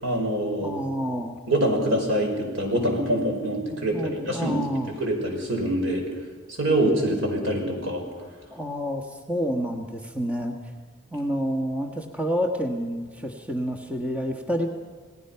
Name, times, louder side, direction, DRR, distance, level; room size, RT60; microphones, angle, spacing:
voice 1, 0.0-0.7 1.5-6.0 6.6-8.0, right 1 dB, 75° right, 2 dB, 5.4 m, -25 dB
voice 2, 0.6-1.4 3.7-4.9 8.5-10.6 11.1-14.7, equal, 5° right, 3 dB, 1.3 m, -29 dB
29.0 x 18.5 x 5.7 m, 1.5 s
head